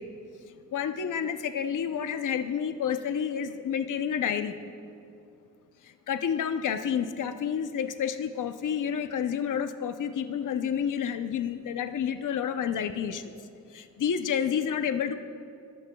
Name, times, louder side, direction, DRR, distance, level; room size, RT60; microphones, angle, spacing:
voice 1, 0.7-4.6 6.1-13.3 13.7-15.2, left 8 dB, 70° left, 8 dB, 0.7 m, -29 dB
28.0 x 14.5 x 2.3 m, 2.6 s
wide cardioid pair, 140°, 32 cm